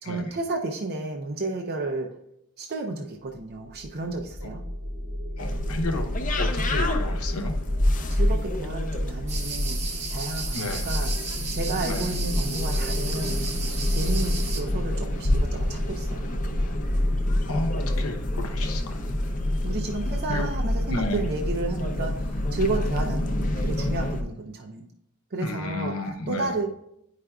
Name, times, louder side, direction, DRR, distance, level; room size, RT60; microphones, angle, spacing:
voice 1, 0.0-2.1 2.6-4.6 8.1-9.8 10.1-11.1 11.5-13.4 13.9-16.3 19.6-24.9 25.3-25.9 26.3-26.7, right 2 dB, 45° right, 2 dB, 0.5 m, -32 dB
sound 1, 3.3-18.5, left 1 dB, 70° right, 0.9 m, -36 dB
voice 2, 5.4-6.1 6.4-7.5 10.5-10.9 11.8-12.1 17.5-19.1 20.3-20.5 20.9-21.2 25.4-26.6, left 2 dB, 70° left, 4 dB, 0.8 m, -31 dB
sound 2, 5.4-24.2, left 1 dB, 35° left, 0.6 m, -27 dB
sound 3, 9.3-14.6, right 4 dB, 30° right, 0.9 m, -34 dB
9.8 x 4.9 x 2.3 m, 0.76 s
head